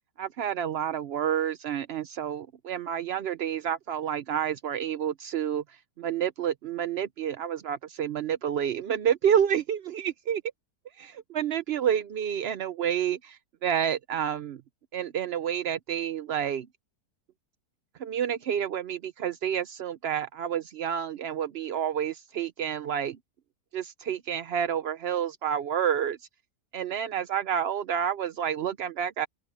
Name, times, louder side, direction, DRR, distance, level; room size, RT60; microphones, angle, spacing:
voice 1, 0.2-10.4 11.0-14.6 14.9-16.7 18.0-23.2 23.7-26.2 26.7-29.3, right 9 dB, 70° right, 0.6 m, -29 dB
open air
omnidirectional pair, 1.8 m